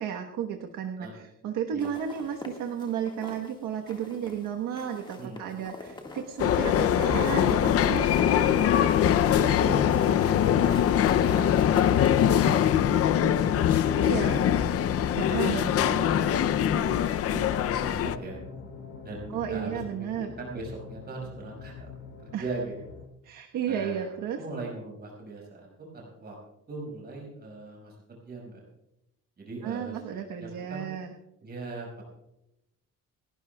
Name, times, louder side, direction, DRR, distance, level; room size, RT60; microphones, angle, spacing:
voice 1, 0.0-8.0 14.0-14.4 15.2-15.7 19.3-20.3 22.3-22.4 23.2-24.4 29.6-31.1, right 8 dB, 80° right, 3 dB, 1.3 m, -33 dB
sound 1, 1.8-3.5 3.9-4.5 4.8-12.7, left 2 dB, 15° left, 1.7 m, -42 dB
voice 2, 5.2-5.5 6.7-6.8 8.4-8.7 9.3-11.9 12.2-14.1 14.4-14.7 15.3-16.4 16.6-18.4 19.0-21.9 22.2-22.7 23.7-26.4 26.7-28.6 29.4-30.9 31.4-32.0, right 3 dB, 30° right, -2 dB, 5.3 m, -40 dB
sound 2, 6.4-18.2, left 10 dB, 50° left, 0.5 m, -23 dB
sound 3, 14.4-23.1, left 5 dB, 65° left, 3.3 m, -44 dB
29.0 x 12.0 x 2.3 m, 0.87 s
cardioid pair, 165°, 32 cm